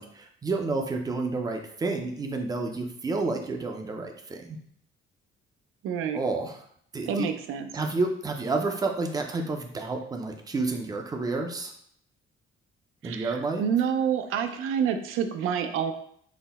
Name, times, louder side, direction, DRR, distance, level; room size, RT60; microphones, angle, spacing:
voice 1, 0.0-4.6 6.1-6.6 6.9-7.3 7.7-11.7 13.0-13.6, right 3 dB, 20° right, 3 dB, 0.4 m, -30 dB
voice 2, 5.8-6.2 7.1-7.7 13.0-15.9, right 7 dB, 80° right, 7 dB, 0.5 m, -28 dB
4.0 x 2.1 x 4.0 m, 0.65 s
cardioid pair, 155°, 21 cm